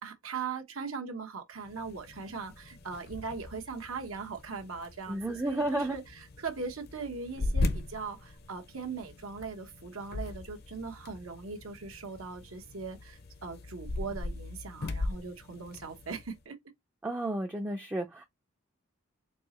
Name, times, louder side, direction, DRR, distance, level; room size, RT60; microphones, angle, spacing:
voice 1, 0.0-16.6, right 5 dB, 80° right, 1.1 m, -40 dB
sound 1, 1.6-16.4, left 2 dB, 50° left, 0.6 m, -39 dB
voice 2, 5.1-6.0 17.0-18.2, right 1 dB, 10° right, 0.4 m, -32 dB
4.6 x 2.8 x 2.9 m
head